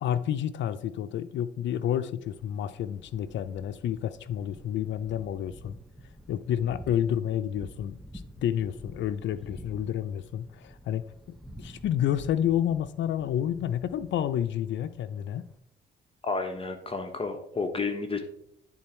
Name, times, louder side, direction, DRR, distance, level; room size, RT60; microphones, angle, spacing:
voice 1, 0.0-5.8 6.3-8.0 8.4-11.0 11.6-15.4, left 10 dB, 70° left, 13 dB, 0.5 m, -29 dB
Thunder, 2.2-15.6, equal, ahead, 0.7 m, -49 dB
voice 2, 16.2-18.2, left 4 dB, 30° left, 6 dB, 0.9 m, -31 dB
9.5 x 3.8 x 4.4 m, 0.72 s
cardioid pair, 90°, 20 cm